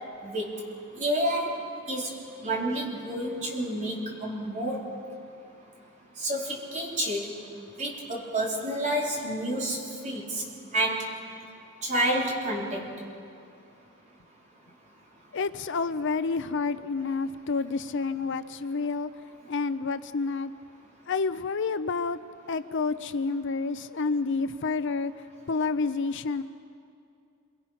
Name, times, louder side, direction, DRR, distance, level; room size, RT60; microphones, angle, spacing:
voice 1, 0.2-0.5 1.0-2.1 2.4-4.8 6.2-7.3 7.8-9.8 10.0-10.4 10.7-11.1 11.8-12.9, right 1 dB, 35° right, -2 dB, 4.0 m, -29 dB
voice 2, 15.3-19.1 19.5-20.5 21.1-22.2 22.5-25.1 25.5-26.4, left 4 dB, 55° left, 12 dB, 0.6 m, -29 dB
28.0 x 24.0 x 5.8 m, 2.5 s
head